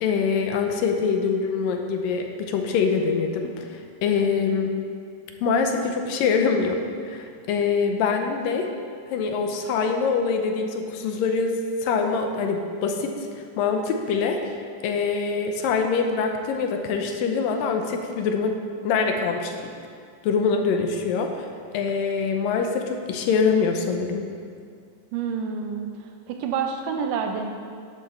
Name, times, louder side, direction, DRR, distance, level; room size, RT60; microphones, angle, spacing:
voice 1, 0.0-4.7 5.4-8.7 9.1-11.6 11.8-14.6 14.8-18.6 18.8-19.7 20.2-21.5 21.7-24.3, left 5 dB, 80° left, 4 dB, 2.4 m, -24 dB
voice 2, 25.1-27.5, right 6 dB, 75° right, 4 dB, 2.1 m, -28 dB
11.5 x 11.0 x 4.4 m, 2.2 s
omnidirectional pair, 4.2 m